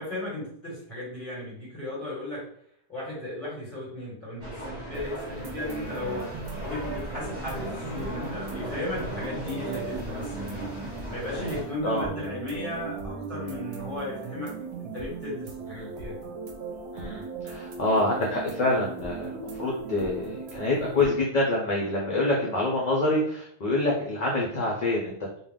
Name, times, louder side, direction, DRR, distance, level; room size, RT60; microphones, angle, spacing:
voice 1, 0.0-2.5 2.9-6.3 6.6-10.7 11.1-16.2, left 1 dB, 15° left, -8 dB, 1.5 m, -36 dB
sound 1, 4.4-11.6, right 1 dB, 35° right, 1.1 m, -38 dB
sound 2, 4.9-21.1, right 4 dB, 85° right, 0.9 m, -38 dB
voice 2, 16.9-25.4, left 2 dB, 50° left, -2 dB, 0.5 m, -26 dB
2.4 x 2.2 x 3.4 m, 0.66 s
omnidirectional pair, 1.1 m